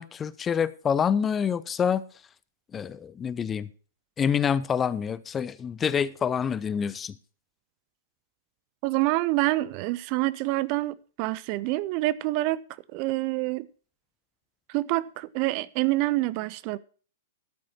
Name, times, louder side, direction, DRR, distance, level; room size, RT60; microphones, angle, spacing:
voice 1, 0.0-2.0 2.7-3.7 4.2-7.1, left 7 dB, 20° left, 0.5 m, -27 dB
voice 2, 8.8-12.6 12.9-13.7 14.7-16.8, right 19 dB, 40° right, 0.5 m, -27 dB
13.0 x 7.6 x 4.4 m
figure-of-eight pair, 110°, 0 cm